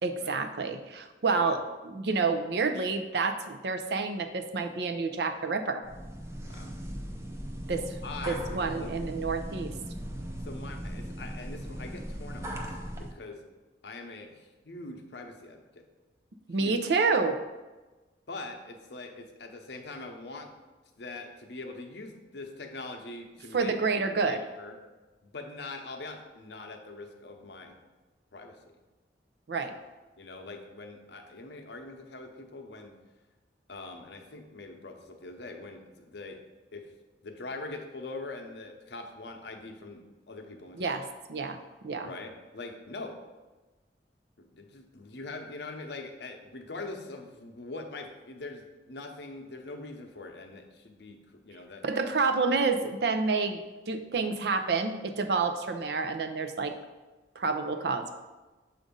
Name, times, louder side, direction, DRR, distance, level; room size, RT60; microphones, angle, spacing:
voice 1, 0.0-5.8 7.7-7.8 8.3-9.7 16.5-17.4 23.5-24.4 29.5-29.7 40.8-41.0 41.3-41.6 41.8-42.1 51.8-53.6 53.9-56.7 57.4-58.1, right 4 dB, 65° right, 7 dB, 0.5 m, -28 dB
sound 1, 5.8-13.1, equal, 15° right, 0.5 m, -38 dB
voice 2, 7.7-8.9 10.4-13.4 13.8-15.8 16.6-16.8 18.3-20.5 21.0-23.7 24.2-24.8 25.2-27.8 28.3-28.7 30.2-32.9 33.7-36.4 36.7-36.9 37.2-41.0 42.1-43.2 44.5-51.8, left 3 dB, 70° left, 4 dB, 0.7 m, -43 dB
7.2 x 2.5 x 5.2 m, 1.2 s
head